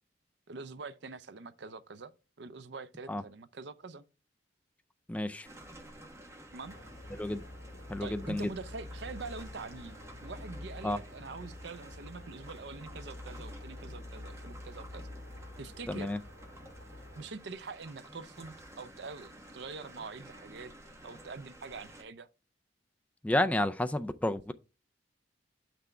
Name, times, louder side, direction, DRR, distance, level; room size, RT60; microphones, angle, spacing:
voice 1, 0.5-2.1 2.4-4.0 6.5-6.7 8.0-15.1 15.6-16.1 17.2-20.7 21.0-22.3, right 4 dB, 65° right, 0.6 m, -44 dB
voice 2, 5.1-5.5 7.1-7.4 7.9-8.5 10.8-11.0 15.9-16.2 23.2-24.5, left 1 dB, 5° left, 0.3 m, -31 dB
sound 1, 5.4-22.0, right 1 dB, 15° right, 1.2 m, -52 dB
sound 2, 6.7-17.3, left 1 dB, 60° left, 3.4 m, -47 dB
7.8 x 6.0 x 3.3 m
head